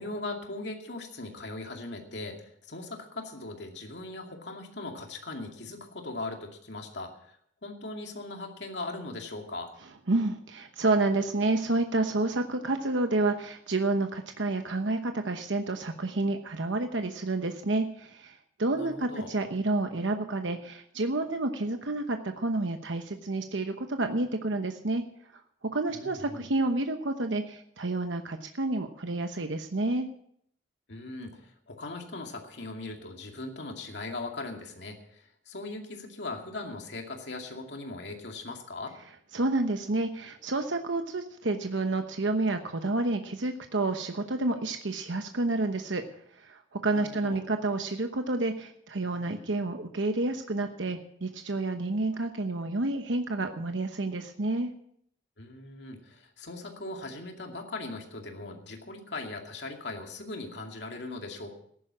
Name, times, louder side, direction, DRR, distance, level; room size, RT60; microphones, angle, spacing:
voice 1, 0.0-9.7 18.7-19.3 25.9-26.5 30.9-39.0 46.9-47.4 55.4-61.6, left 2 dB, 70° left, 3 dB, 2.3 m, -39 dB
voice 2, 10.1-25.0 25.7-30.1 39.3-46.0 46.4-54.7, right 2 dB, 90° right, 6 dB, 1.0 m, -29 dB
14.5 x 11.0 x 6.2 m, 0.68 s
head